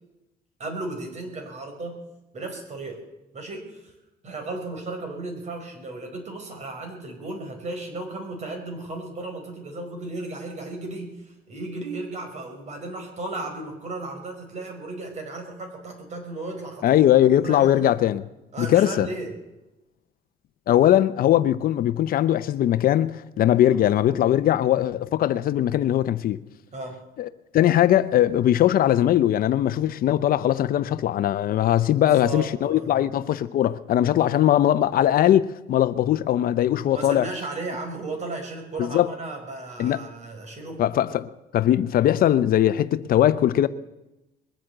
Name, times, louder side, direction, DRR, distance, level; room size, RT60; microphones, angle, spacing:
voice 1, 0.6-2.0 2.3-3.0 3.3-3.9 4.2-16.9 17.4-17.9 18.5-19.3 23.7-23.8 26.7-27.0 31.9-33.1 34.2-34.3 36.9-40.8, right 2 dB, 45° right, 5.0 m, -35 dB
voice 2, 16.8-18.2 18.6-19.1 20.7-26.4 27.2-37.3 38.8-39.1 39.8-40.1 40.8-43.7, left 12 dB, 60° left, 0.7 m, -20 dB
21.5 x 8.5 x 7.9 m
cardioid pair, 110°, 17 cm